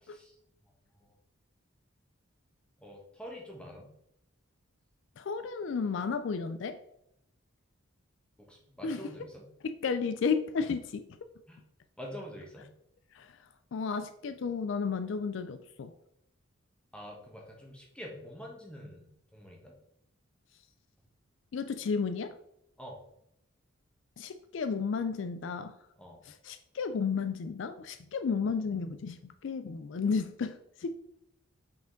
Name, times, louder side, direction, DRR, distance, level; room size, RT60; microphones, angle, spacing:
voice 1, 0.0-0.4 1.0-1.1 2.8-3.9 8.4-9.4 11.5-11.6 12.0-12.7 16.9-19.7 22.8-23.0 26.0-26.3, equal, 5° left, -1 dB, 1.3 m, -46 dB
voice 2, 5.2-6.8 8.8-9.0 9.6-11.0 13.1-13.4 13.7-15.9 21.5-22.3 24.2-25.8 26.3-30.9, left 5 dB, 60° left, 11 dB, 0.3 m, -33 dB
5.8 x 5.1 x 3.8 m, 0.78 s
head